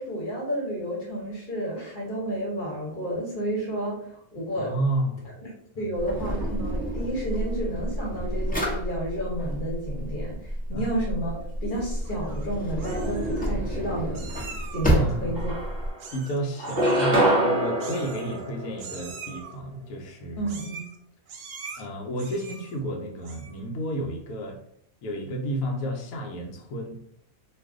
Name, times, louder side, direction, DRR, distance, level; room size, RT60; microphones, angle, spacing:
voice 1, 0.0-4.7 5.4-5.5 5.8-14.2 14.7-15.5 20.4-20.8, right 1 dB, 40° left, -4 dB, 1.0 m, -31 dB
voice 2, 4.6-5.2 10.7-10.9 14.9-15.3 16.1-20.5 21.8-24.6 25.0-27.0, right 1 dB, 80° left, 1 dB, 1.0 m, -31 dB
Drawer open or close, 6.0-15.9, equal, 10° left, 0.4 m, -30 dB
Meow, 12.0-12.5 12.8-13.5 14.1-15.0 16.0-16.4 16.6-17.1 17.8-18.5 18.8-19.5 20.4-21.0 21.3-21.8 22.2-22.8 23.2-23.6, right 5 dB, 70° right, 0.9 m, -42 dB
sound 1, 14.9-15.0 15.4-16.1 16.6-19.2, right 1 dB, 40° right, 0.7 m, -25 dB
2.5 x 2.4 x 3.5 m, 0.68 s
omnidirectional pair, 1.5 m